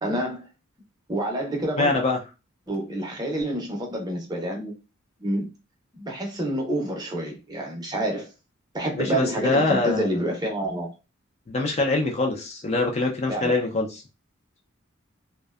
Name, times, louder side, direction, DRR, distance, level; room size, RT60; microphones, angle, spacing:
voice 1, 0.0-0.5 1.1-2.0 2.7-4.7 5.2-5.5 5.9-8.3 8.7-10.9 13.3-13.5, right 1 dB, 20° right, 0.6 m, -28 dB
voice 2, 1.8-2.2 9.0-10.1 11.5-13.9, left 2 dB, 30° left, 0.4 m, -24 dB
2.5 x 2.1 x 2.3 m
head